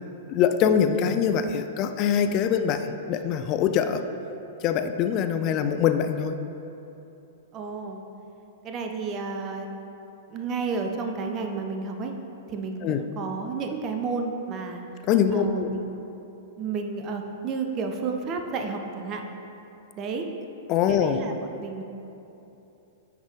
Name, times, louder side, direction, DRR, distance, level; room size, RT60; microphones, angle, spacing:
voice 1, 0.3-4.0 4.6-6.4 12.8-13.0 15.0-15.7 20.7-21.2, left 8 dB, 35° left, 8 dB, 0.3 m, -23 dB
voice 2, 7.5-8.0 8.6-9.7 10.3-12.1 12.5-14.8 15.3-16.0 16.6-19.2 20.0-20.3 20.9-21.8, right 4 dB, 30° right, 4 dB, 0.5 m, -31 dB
10.0 x 3.9 x 3.1 m, 2.9 s
figure-of-eight pair, 100°, 0 cm